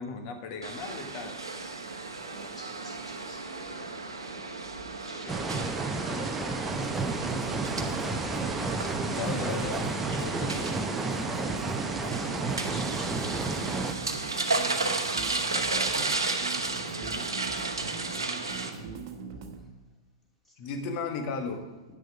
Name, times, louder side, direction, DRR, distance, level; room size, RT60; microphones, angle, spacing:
voice 1, 0.0-1.4 7.7-8.1 9.1-10.9 17.1-17.4 20.6-21.7, left 4 dB, 45° left, 5 dB, 1.3 m, -36 dB
sound 1, 0.6-18.7, right 3 dB, 85° right, 0.9 m, -34 dB
voice 2, 2.3-4.0 5.1-7.0 8.9-9.4 9.7-10.4 10.9-13.4 14.5-16.0 18.0-19.5 20.4-20.5, equal, 15° left, -3 dB, 2.7 m, -50 dB
sound 2, 5.3-13.9, right 3 dB, 10° right, 0.7 m, -31 dB
sound 3, 6.7-19.6, right 5 dB, 55° right, 1.1 m, -42 dB
9.4 x 6.4 x 4.8 m, 1.2 s
figure-of-eight pair, 105°, 2 cm